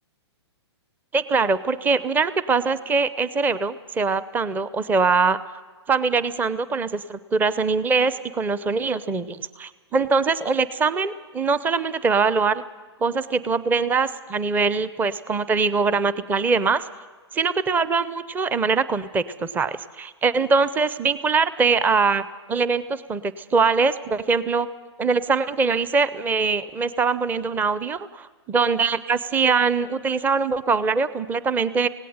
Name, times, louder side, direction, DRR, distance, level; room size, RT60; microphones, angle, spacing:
voice 1, 1.1-5.4 5.9-12.6 13.0-16.8 17.3-24.7 25.0-31.9, right 4 dB, 10° right, 16 dB, 0.7 m, -22 dB
17.5 x 17.5 x 8.7 m, 1.4 s
hypercardioid pair, 130°, 15 cm